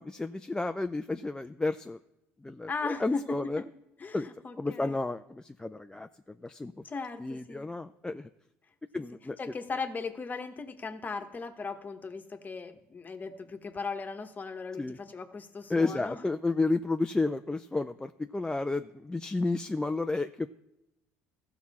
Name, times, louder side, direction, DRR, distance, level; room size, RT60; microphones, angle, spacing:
voice 1, 0.0-2.0 2.4-3.6 4.1-4.3 4.6-6.7 7.2-8.3 8.9-9.4 14.8-15.0 15.7-20.5, left 3 dB, 10° left, 8 dB, 0.4 m, -31 dB
voice 2, 2.7-3.7 4.0-5.0 6.8-7.7 8.9-9.0 9.4-16.2, left 4 dB, 30° left, 8 dB, 1.1 m, -38 dB
15.5 x 5.9 x 4.2 m, 0.89 s
supercardioid pair, 75°, 6 cm